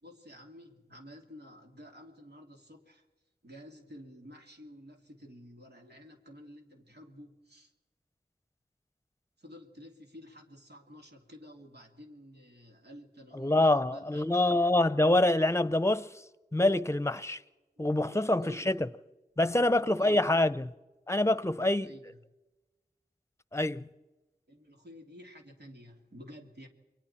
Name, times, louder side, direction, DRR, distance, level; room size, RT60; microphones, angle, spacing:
voice 1, 0.0-3.0 3.4-7.7 9.4-14.5 17.8-18.8 19.5-20.3 21.3-22.2 24.5-26.7, equal, 80° right, 2.8 m, -52 dB
voice 2, 13.3-16.1 16.5-17.4 17.8-18.9 19.4-20.7 21.1-21.9 23.5-23.9, left 1 dB, 15° left, 0.8 m, -26 dB
29.5 x 23.0 x 4.4 m
wide cardioid pair, 45°, 17 cm